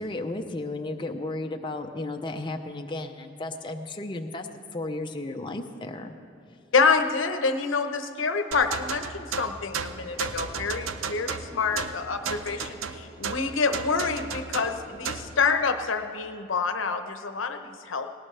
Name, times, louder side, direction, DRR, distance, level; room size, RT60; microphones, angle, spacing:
voice 1, 0.0-6.1, left 2 dB, 25° left, 4 dB, 0.6 m, -34 dB
voice 2, 6.7-18.1, left 5 dB, 70° left, 7 dB, 0.9 m, -27 dB
sound 1, 8.5-15.4, right 6 dB, 75° right, 0.6 m, -34 dB
sound 2, 8.7-13.0, equal, 30° right, 3.1 m, -50 dB
sound 3, 9.9-15.5, equal, 10° right, 1.5 m, -49 dB
18.5 x 18.5 x 3.3 m, 2.5 s
head